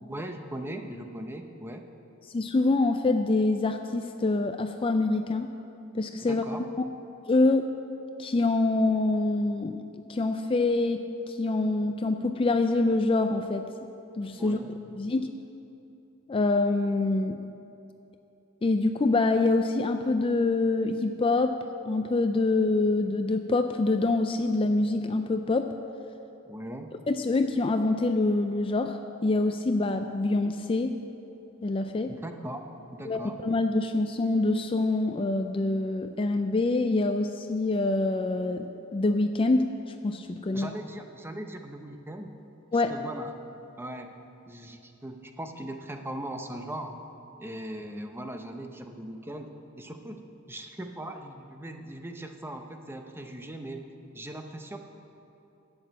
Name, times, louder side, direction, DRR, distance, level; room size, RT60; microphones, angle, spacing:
voice 1, 0.0-1.8 6.2-6.6 14.4-15.1 26.5-26.9 32.1-32.7 32.9-33.4 40.5-42.3 42.9-43.3 43.8-44.2 44.5-47.0 47.4-50.2 50.5-54.8, right 1 dB, 10° right, 5 dB, 0.8 m, -39 dB
voice 2, 2.3-5.5 5.9-6.4 6.8-6.9 7.3-7.7 8.2-9.8 10.1-13.7 14.2-14.6 15.0-15.3 16.3-17.4 18.6-21.6 21.9-25.7 27.1-30.9 31.6-32.1 33.1-39.7 40.0-40.7 42.7-42.9, left 2 dB, 25° left, 7 dB, 0.4 m, -25 dB
11.5 x 8.0 x 8.2 m, 2.9 s
head